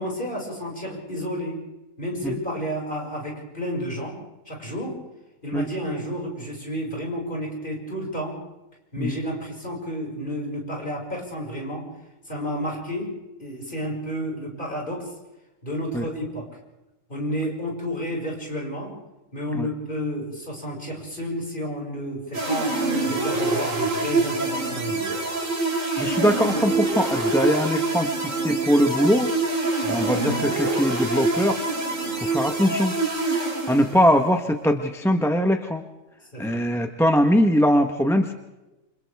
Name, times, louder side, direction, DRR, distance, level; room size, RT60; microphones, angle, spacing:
voice 1, 0.0-1.6 2.0-4.2 4.5-5.0 5.4-8.4 8.9-11.9 12.3-15.1 15.6-16.5 17.1-18.9 19.3-25.2 29.8-30.1 36.3-36.7, equal, 40° left, -2 dB, 6.0 m, -31 dB
sound 1, 22.3-34.2, right 2 dB, 80° right, 3.4 m, -25 dB
voice 2, 26.0-29.3 29.9-31.6 32.2-32.9 33.7-35.8 36.4-38.3, equal, ahead, 5 dB, 1.0 m, -21 dB
28.0 x 26.0 x 3.5 m, 1.0 s
omnidirectional pair, 1.4 m